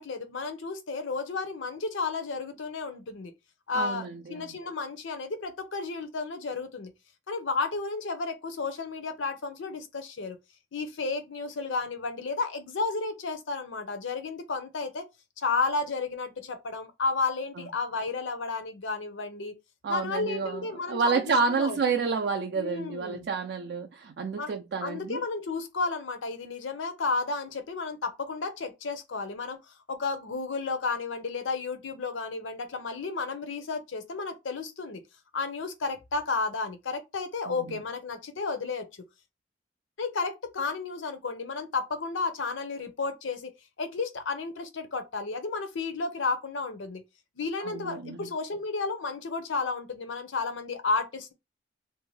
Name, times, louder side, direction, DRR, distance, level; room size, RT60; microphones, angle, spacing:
voice 1, 0.0-3.3 3.7-6.9 7.3-10.4 10.7-15.1 15.4-19.6 19.9-21.8 22.5-23.3 24.4-24.5 24.8-29.6 29.9-35.0 35.3-38.9 40.0-43.5 43.8-47.0 47.4-51.3, left 4 dB, 90° left, 0.6 m, -32 dB
voice 2, 3.7-4.5 19.8-25.2 37.5-37.8 47.6-48.3, right 4 dB, 60° right, 0.3 m, -29 dB
2.6 x 2.2 x 3.1 m
head